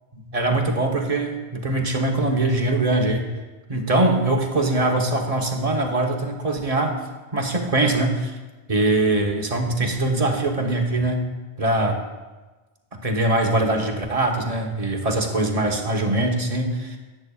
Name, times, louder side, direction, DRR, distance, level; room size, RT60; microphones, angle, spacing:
voice 1, 0.1-3.2 3.7-7.0 7.3-8.3 8.7-11.3 11.6-12.0 12.9-17.0, right 2 dB, 35° right, 2 dB, 1.1 m, -22 dB
13.5 x 9.6 x 2.4 m, 1.2 s
omnidirectional pair, 1.1 m